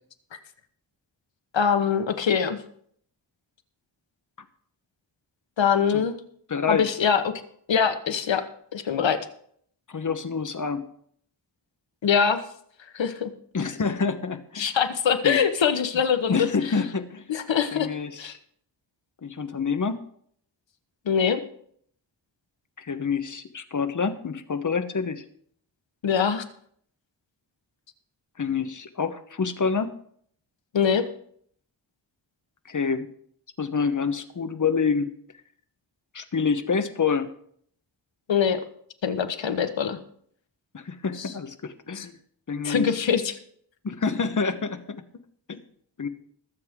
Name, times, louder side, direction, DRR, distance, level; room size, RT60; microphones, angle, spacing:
voice 1, 1.5-2.6 5.6-6.1 6.7-7.3 7.7-8.4 8.7-9.2 12.0-12.4 12.9-13.3 14.6-16.5 17.3-17.9 18.2-18.3 21.1-21.4 26.0-26.4 30.7-31.1 38.3-38.6 39.0-40.0 41.9-42.1 42.6-43.4, left 7 dB, 90° left, 8 dB, 1.2 m, -23 dB
voice 2, 6.5-6.9 9.9-10.9 13.5-14.7 15.2-15.4 15.9-16.0 16.3-17.3 17.7-18.4 19.2-20.0 22.8-25.3 28.4-29.9 32.6-33.1 33.6-35.1 36.1-37.3 40.7-42.1 42.5-42.9 43.8-45.0 45.5-45.6 46.0-46.1, left 5 dB, 45° left, 10 dB, 1.1 m, -27 dB
21.0 x 7.7 x 3.7 m, 0.64 s
wide cardioid pair, 100°, 44 cm